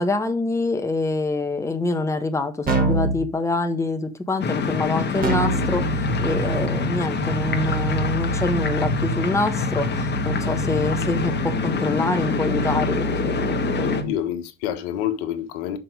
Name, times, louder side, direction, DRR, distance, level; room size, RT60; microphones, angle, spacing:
voice 1, 0.0-14.1, left 2 dB, 10° left, 1.1 m, -26 dB
Keyboard (musical), 2.7-3.2 5.2-14.1, right 3 dB, 25° right, 2.2 m, -27 dB
sound 1, 4.4-14.0, left 5 dB, 30° left, 1.4 m, -26 dB
voice 2, 13.6-15.8, left 11 dB, 65° left, 1.3 m, -28 dB
5.9 x 5.0 x 4.9 m
hypercardioid pair, 80°, 36 cm